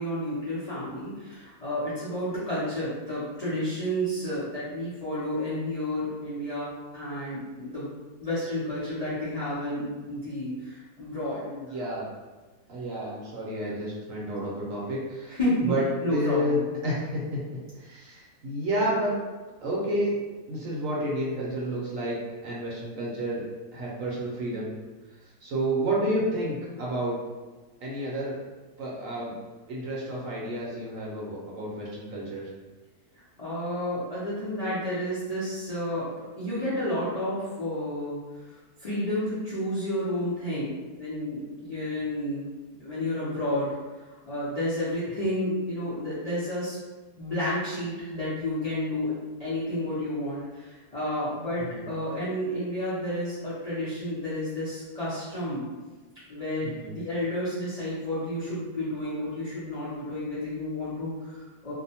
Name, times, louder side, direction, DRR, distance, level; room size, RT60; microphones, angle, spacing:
voice 1, 0.0-7.9 8.2-11.5 15.3-15.7 16.0-16.7 33.4-36.1 36.4-38.5 38.8-42.5 42.8-43.7 43.9-46.8 47.2-49.1 49.4-55.7 56.3-61.7, left 1 dB, 60° left, -11 dB, 0.4 m, -31 dB
voice 2, 11.5-12.1 12.7-15.8 16.1-16.6 16.8-17.4 17.7-19.1 19.6-20.2 20.5-22.2 22.4-23.4 23.7-24.7 25.4-27.2 27.8-28.3 28.8-29.4 29.7-32.5 51.7-51.8 56.6-56.9, right 1 dB, 65° right, -5 dB, 0.9 m, -30 dB
2.7 x 2.1 x 2.7 m, 1.2 s
omnidirectional pair, 1.7 m